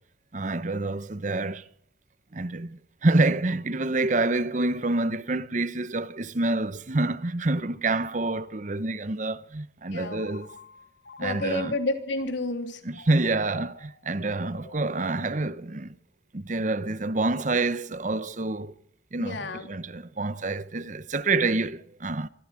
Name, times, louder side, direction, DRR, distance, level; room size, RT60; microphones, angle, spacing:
voice 1, 0.3-1.6 2.3-10.5 11.2-11.8 12.8-15.9 16.3-18.7 19.1-22.3, right 2 dB, 45° right, 0.9 m, -27 dB
voice 2, 9.9-10.3 11.2-12.8 19.2-19.7, left 2 dB, 90° left, 3.2 m, -30 dB
Telephone, 10.0-12.1 12.9-15.9, left 3 dB, 70° left, 2.6 m, -49 dB
25.0 x 15.5 x 7.6 m
head